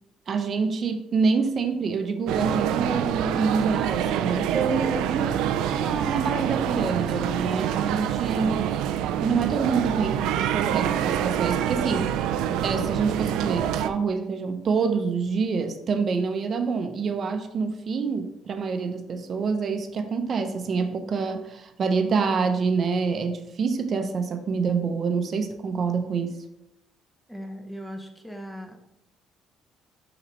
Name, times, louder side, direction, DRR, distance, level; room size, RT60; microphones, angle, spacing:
voice 1, 0.3-5.4 5.8-8.7 9.2-12.1 12.5-26.4, right 5 dB, 35° right, 7 dB, 0.7 m, -26 dB
sound 1, 2.3-13.9, right 10 dB, 90° right, 0.4 m, -26 dB
voice 2, 27.3-28.8, equal, 5° left, 4 dB, 0.7 m, -38 dB
11.0 x 4.0 x 3.2 m, 0.84 s
cardioid pair, 170°, 0 cm